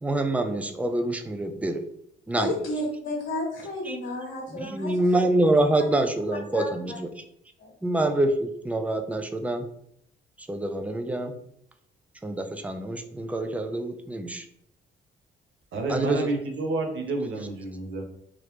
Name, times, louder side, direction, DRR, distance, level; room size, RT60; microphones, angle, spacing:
voice 1, 0.0-1.8 2.3-2.5 3.9-4.0 4.5-7.1 7.8-9.7 10.4-11.3 12.2-14.5 15.9-16.4, right 1 dB, 5° right, 6 dB, 0.3 m, -26 dB
voice 2, 2.3-4.9 6.5-7.0 7.6-7.7, left 1 dB, 65° left, -2 dB, 0.9 m, -32 dB
voice 3, 15.7-18.0, right 2 dB, 80° right, 2 dB, 0.8 m, -29 dB
3.1 x 2.5 x 3.2 m, 0.71 s
cardioid pair, 90°, 20 cm